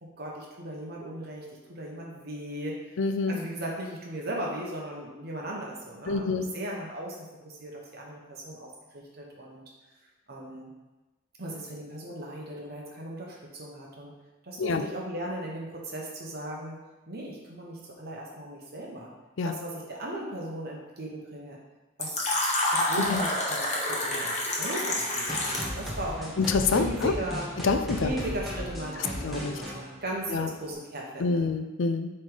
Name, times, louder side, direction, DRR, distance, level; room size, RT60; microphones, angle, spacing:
voice 1, 0.0-2.8 3.3-9.6 10.3-10.7 11.4-14.1 14.4-16.8 17.1-19.1 19.4-21.6 22.0-22.2 22.7-26.4 26.7-27.5 28.0-31.4, right 1 dB, 50° right, -2 dB, 1.1 m, -37 dB
voice 2, 3.0-3.4 6.1-6.5 14.6-14.8 19.4-19.5 23.0-23.2 26.4-27.1 27.6-28.1 29.2-29.5 30.3-30.5 31.2-32.1, left 4 dB, 65° left, 8 dB, 0.5 m, -26 dB
Fill (with liquid), 22.0-25.8, left 1 dB, 35° left, 1.0 m, -28 dB
sound 1, 25.3-30.7, equal, ahead, 1.1 m, -36 dB
7.5 x 3.3 x 3.9 m, 1.1 s
head